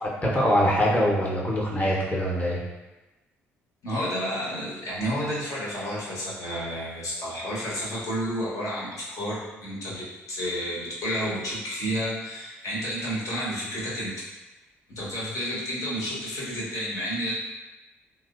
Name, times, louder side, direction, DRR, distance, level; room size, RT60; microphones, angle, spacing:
voice 1, 0.0-2.6, equal, 20° left, -4 dB, 0.9 m, -23 dB
voice 2, 3.8-14.2 14.9-17.3, equal, 50° left, -6 dB, 1.0 m, -31 dB
3.0 x 2.1 x 2.4 m, 1.1 s
figure-of-eight pair, 45°, 7 cm